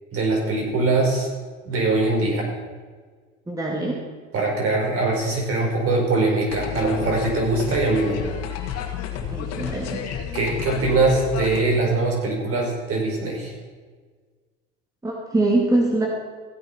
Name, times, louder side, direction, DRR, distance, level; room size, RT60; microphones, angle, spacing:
voice 1, 0.1-1.3 1.6-2.5 4.3-8.2 10.3-13.5, right 3 dB, 50° right, 0 dB, 5.0 m, -22 dB
voice 2, 3.5-4.0 9.3-10.0 15.0-16.1, right 2 dB, 10° right, -1 dB, 2.4 m, -23 dB
sound 1, 6.5-11.6, left 8 dB, 60° left, 2.1 m, -31 dB
16.0 x 8.8 x 5.8 m, 1.5 s
supercardioid pair, 90°, 29 cm